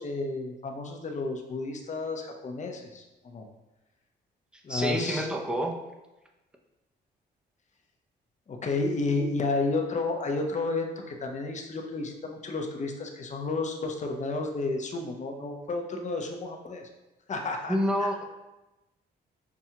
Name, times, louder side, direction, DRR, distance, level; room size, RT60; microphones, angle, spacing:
voice 1, 0.0-3.5 4.6-5.3 8.5-16.9 17.3-17.7, left 3 dB, 40° left, 3 dB, 0.6 m, -31 dB
voice 2, 4.7-5.7 17.7-18.2, equal, 5° right, 1 dB, 0.6 m, -28 dB
5.7 x 2.3 x 2.8 m, 1.0 s
cardioid pair, 85°, 19 cm